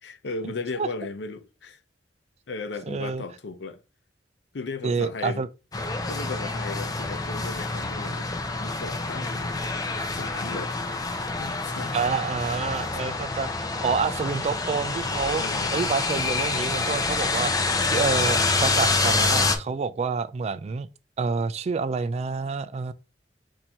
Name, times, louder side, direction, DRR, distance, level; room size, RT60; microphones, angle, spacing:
voice 1, 0.0-1.8 2.5-3.8 4.5-5.4 6.1-8.3 8.6-9.7 10.1-12.0 12.9-13.0 15.4-15.8, left 3 dB, 85° left, 0.6 m, -36 dB
voice 2, 2.9-3.2 4.8-5.5 11.9-15.4 15.7-17.5 17.9-20.9 21.2-22.9, right 5 dB, 40° right, 0.3 m, -28 dB
sound 1, 5.7-19.6, left 3 dB, 20° left, 0.5 m, -27 dB
4.4 x 2.7 x 4.4 m
head